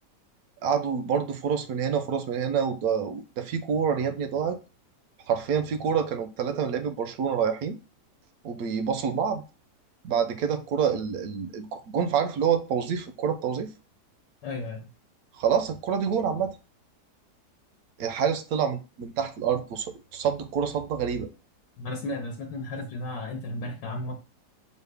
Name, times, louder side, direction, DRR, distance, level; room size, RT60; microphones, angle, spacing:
voice 1, 0.6-4.6 5.3-7.8 8.4-9.4 10.0-13.7 15.4-16.5 18.0-21.3, right 7 dB, 70° right, 0.9 m, -27 dB
voice 2, 14.4-14.9 21.8-24.2, left 2 dB, 80° left, 1.4 m, -34 dB
5.4 x 2.1 x 3.3 m
omnidirectional pair, 1.9 m